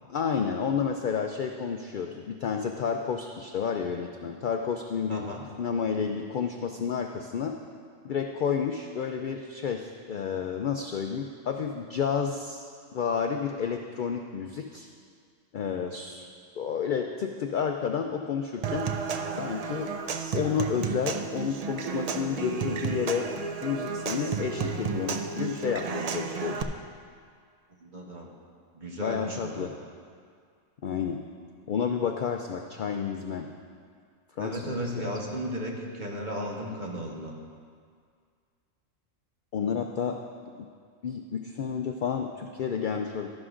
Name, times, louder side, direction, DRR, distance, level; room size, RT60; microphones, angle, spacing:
voice 1, 0.1-5.3 5.6-7.6 8.0-12.6 12.9-14.9 15.5-16.2 16.6-18.9 19.4-19.9 20.3-23.3 23.6-26.6 29.0-29.7 30.8-31.2 31.7-33.5 34.4-35.1 39.5-40.2 40.6-40.7 41.0-43.3, left 6 dB, 65° left, 4 dB, 0.5 m, -30 dB
voice 2, 5.1-5.4 27.8-28.3 28.7-29.7 34.4-37.3, equal, 40° right, -1 dB, 1.1 m, -35 dB
Human voice / Acoustic guitar / Percussion, 18.6-26.6, right 5 dB, 80° right, 0.3 m, -32 dB
12.5 x 11.0 x 2.5 m, 2.1 s
omnidirectional pair, 1.3 m